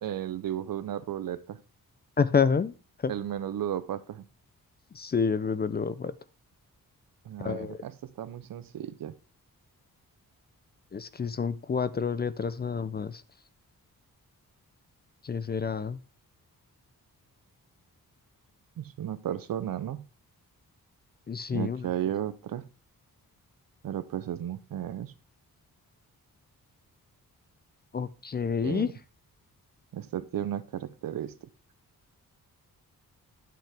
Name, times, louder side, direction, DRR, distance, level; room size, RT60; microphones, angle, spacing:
voice 1, 0.0-1.6 3.1-4.2 7.3-7.9 8.2-9.1 18.8-20.0 21.5-22.7 23.8-25.1 28.6-28.9 29.9-31.3, right 10 dB, 70° right, 14 dB, 0.6 m, -34 dB
voice 2, 2.2-2.7 3.0-3.1 4.9-6.1 7.4-7.8 10.9-13.2 15.2-16.0 21.3-21.9 27.9-28.9, left 6 dB, 30° left, 16 dB, 0.4 m, -28 dB
10.0 x 5.9 x 3.4 m, 0.31 s
wide cardioid pair, 155°, 36 cm